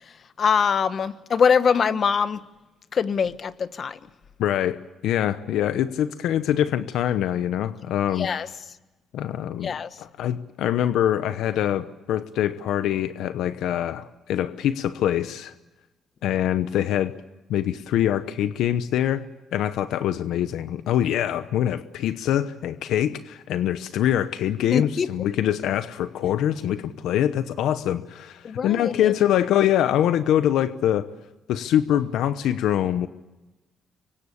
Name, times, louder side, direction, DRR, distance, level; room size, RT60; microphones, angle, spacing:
voice 1, 0.4-2.4 2.9-4.0 8.2-8.5 9.6-9.9 24.7-25.1 28.4-29.1, left 6 dB, 50° left, 13 dB, 1.2 m, -23 dB
voice 2, 4.4-8.3 9.1-9.7 10.0-15.5 16.2-17.1 17.5-19.2 19.5-31.1 31.5-33.1, left 11 dB, 85° left, 12 dB, 0.9 m, -24 dB
26.0 x 24.0 x 8.5 m, 1.1 s
cardioid pair, 90°, 0 cm